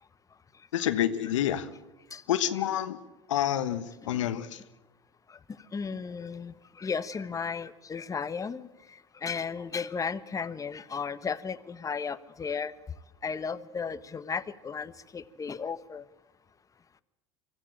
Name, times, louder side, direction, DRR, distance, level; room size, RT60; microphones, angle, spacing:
voice 1, 0.7-1.7 2.3-3.0 3.3-4.6, left 11 dB, 80° left, 11 dB, 1.3 m, -28 dB
voice 2, 5.7-8.7 9.2-12.7 13.2-16.0, left 5 dB, 20° left, 13 dB, 1.2 m, -34 dB
24.0 x 15.5 x 8.8 m, 1.1 s
hypercardioid pair, 90°, 16 cm